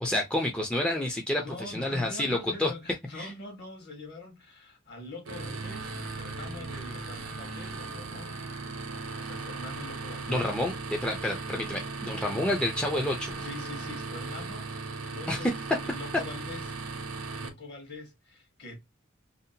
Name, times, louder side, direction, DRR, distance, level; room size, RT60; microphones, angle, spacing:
voice 1, 0.0-2.7 3.2-3.3 10.3-10.7 11.0-13.4 15.3-15.4, left 1 dB, 5° left, 0.4 m, -29 dB
voice 2, 1.4-8.4 9.0-10.5 11.7-11.9 13.4-14.7 15.0-16.6 17.0-18.8, left 2 dB, 55° left, 1.1 m, -44 dB
sound 1, 5.3-17.5, right 3 dB, 85° right, 0.7 m, -37 dB
2.7 x 2.1 x 2.6 m
head